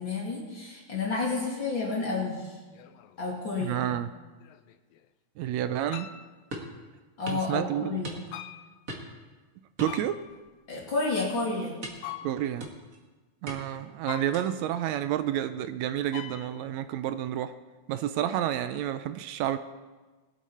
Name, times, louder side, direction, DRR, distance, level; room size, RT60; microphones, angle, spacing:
voice 1, 0.0-2.5 3.2-3.8 7.2-8.2 10.7-11.8, left 3 dB, 40° left, -4 dB, 3.0 m, -30 dB
sound 1, 1.1-1.2 2.7-3.4 4.4-5.1 5.9-6.4 8.3-8.8 9.9-10.5 12.0-12.7 14.1-14.8 16.1-16.7, left 10 dB, 75° left, 1.7 m, -43 dB
voice 2, 3.6-4.1 5.4-6.1 7.3-8.1 9.8-10.3 12.2-12.7 13.4-17.5 17.9-19.6, right 11 dB, 80° right, 11 dB, 1.8 m, -30 dB
sound 2, 6.5-6.8 7.3-7.5 8.0-8.5 8.9-9.2 9.8-10.5 10.9-11.1 11.8-12.1 12.6-13.0 13.5-13.8 14.3-14.6, right 1 dB, 35° right, 1.7 m, -41 dB
21.0 x 8.3 x 4.3 m, 1.3 s
omnidirectional pair, 3.3 m